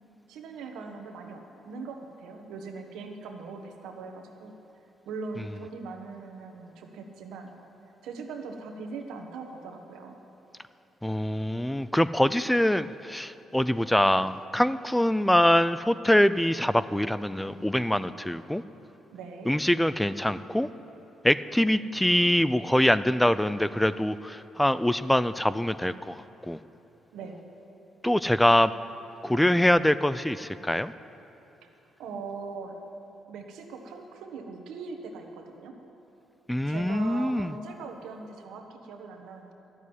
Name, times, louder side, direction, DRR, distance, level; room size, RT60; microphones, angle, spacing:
voice 1, 0.3-4.5 5.0-7.5 8.0-10.2 19.1-19.5 27.1-27.4 32.0-32.8 33.3-35.7 36.7-39.5, right 4 dB, 85° right, 4 dB, 1.3 m, -40 dB
voice 2, 11.0-18.6 19.5-20.7 21.2-26.6 28.0-28.7 29.2-30.9 36.5-37.5, left 1 dB, 5° left, 14 dB, 0.3 m, -24 dB
12.5 x 7.3 x 9.7 m, 3.0 s
cardioid pair, 90°, 0 cm